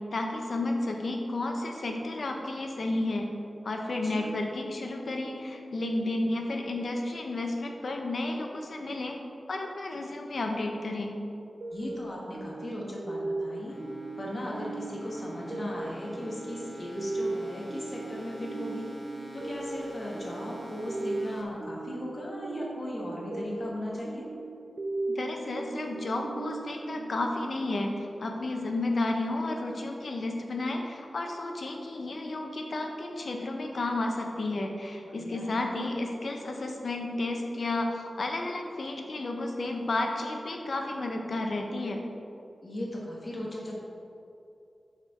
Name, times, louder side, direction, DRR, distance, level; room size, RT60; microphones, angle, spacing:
voice 1, 0.1-3.3 3.6-9.2 9.5-11.2 25.1-27.9 28.2-42.0, left 2 dB, 65° left, 2 dB, 0.7 m, -32 dB
voice 2, 4.0-4.3 11.7-13.8 14.2-18.9 19.3-24.2 35.0-35.7 42.6-43.7, left 1 dB, 40° left, -4 dB, 1.2 m, -37 dB
sound 1, 11.6-27.9, right 2 dB, 60° right, 0.5 m, -38 dB
sound 2, 13.7-21.4, equal, 15° left, 1.2 m, -46 dB
5.9 x 4.4 x 4.6 m, 2.6 s
wide cardioid pair, 85°, 0 cm